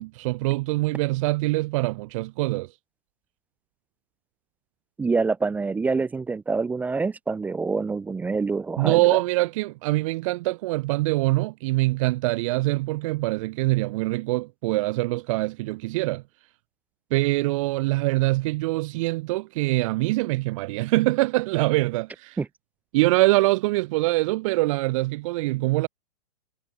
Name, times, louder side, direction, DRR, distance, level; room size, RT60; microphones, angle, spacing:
voice 1, 0.0-2.8 8.8-16.2 17.1-22.4 22.9-25.9, right 20 dB, 55° right, 1.0 m, -24 dB
voice 2, 5.0-9.2 22.4-22.5, right 4 dB, 10° right, 0.4 m, -26 dB
hypercardioid pair, 125°, 21 cm